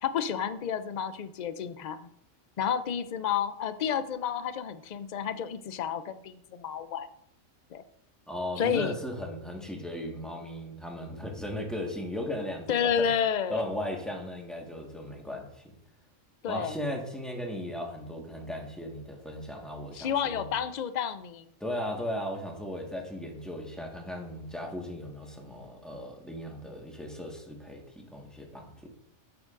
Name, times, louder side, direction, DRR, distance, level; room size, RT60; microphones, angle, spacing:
voice 1, 0.0-2.1 2.6-7.1 7.7-7.8 8.6-9.0 12.7-13.6 16.4-16.8 19.9-21.4, left 8 dB, 60° left, 12 dB, 0.4 m, -30 dB
voice 2, 8.3-13.1 13.5-15.7 16.5-20.5 21.6-28.9, left 1 dB, ahead, 0 dB, 1.4 m, -37 dB
13.0 x 6.3 x 2.5 m, 0.73 s
omnidirectional pair, 1.3 m